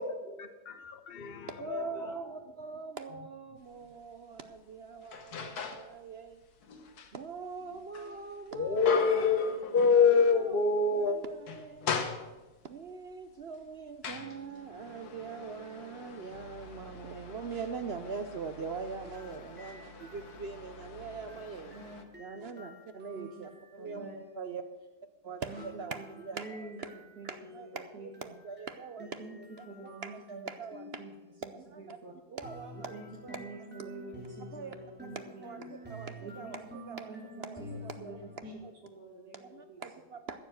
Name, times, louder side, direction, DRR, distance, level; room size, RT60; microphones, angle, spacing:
voice 1, 0.0-2.1 7.7-7.8 8.0-8.2 8.5-11.2, left 5 dB, 45° left, 8 dB, 0.9 m, -27 dB
voice 2, 1.5-6.4 7.1-9.2 10.3-10.6 10.9-11.9 12.6-21.7 22.2-24.1 24.3-24.6 25.2-26.7 27.3-29.7 30.0-31.1 31.4-32.0 32.3-33.5 33.8-33.9 34.4-34.8 35.0-35.1 35.4-37.1 37.4-38.2 38.6-38.7 39.3-40.5, right 5 dB, 55° right, 9 dB, 0.7 m, -42 dB
sound 1, 3.7-3.8 4.3-5.9 6.3-10.4 10.7-10.9 11.3-12.7 13.4-22.0, left 5 dB, 75° left, 1.7 m, -41 dB
sound 2, 19.0-24.3 25.6-31.3 32.4-38.5, left 1 dB, 5° right, 2.6 m, -50 dB
voice 3, 21.5-22.0 22.5-22.7 23.1-23.5 23.7-24.2 25.4-26.1 26.3-27.3 27.6-28.3 29.0-29.4 29.7-30.5 31.0-31.1 31.4-32.1 32.7-35.7 36.2-36.6 37.1-37.2 37.6-38.2 38.4-38.5 38.8-39.8, right 3 dB, 75° right, -4 dB, 2.5 m, -47 dB
14.0 x 7.2 x 7.7 m, 1.2 s
omnidirectional pair, 1.7 m